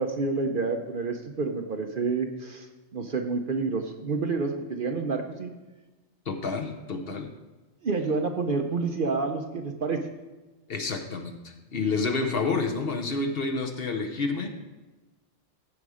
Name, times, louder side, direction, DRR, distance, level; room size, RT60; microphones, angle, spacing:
voice 1, 0.0-2.7 2.9-5.5 7.8-10.0, right 4 dB, 50° right, 4 dB, 0.8 m, -28 dB
voice 2, 6.3-7.3 10.7-14.5, left 4 dB, 50° left, 5 dB, 1.0 m, -29 dB
15.0 x 5.2 x 4.9 m, 1.2 s
omnidirectional pair, 1.3 m